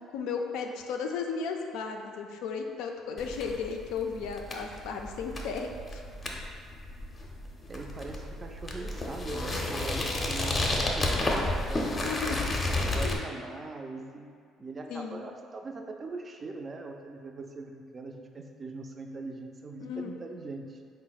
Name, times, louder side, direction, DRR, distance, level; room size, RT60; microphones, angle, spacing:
voice 1, 0.0-6.0 12.0-12.6 13.0-13.2 14.9-15.3 19.8-20.1, left 5 dB, 80° left, 3 dB, 0.3 m, -35 dB
sound 1, 3.2-13.2, left 2 dB, 35° left, 0.6 m, -32 dB
voice 2, 7.7-12.4 12.8-14.3 14.6-20.8, right 3 dB, 35° right, 3 dB, 0.4 m, -41 dB
sound 2, 8.3-12.4, right 2 dB, 65° right, 0.7 m, -44 dB
3.9 x 2.1 x 4.0 m, 2.2 s
supercardioid pair, 75°, 0 cm